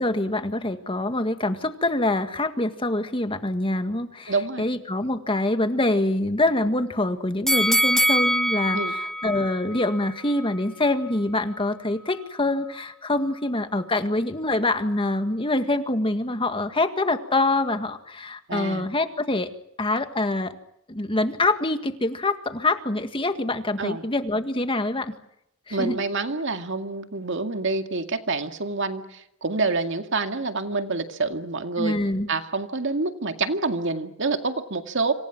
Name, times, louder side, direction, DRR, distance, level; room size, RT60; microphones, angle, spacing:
voice 1, 0.0-19.5 19.8-20.6 20.9-25.1 25.7-26.0 31.8-32.3, left 2 dB, 25° left, 8 dB, 1.8 m, -25 dB
voice 2, 4.3-4.7 8.7-9.0 18.5-18.9 23.8-24.0 25.7-32.0 32.3-35.1, right 3 dB, 60° right, 6 dB, 2.1 m, -27 dB
sound 1, 7.5-10.6 11.0-11.1, equal, ahead, 0.9 m, -24 dB
28.0 x 27.0 x 6.1 m, 0.77 s
head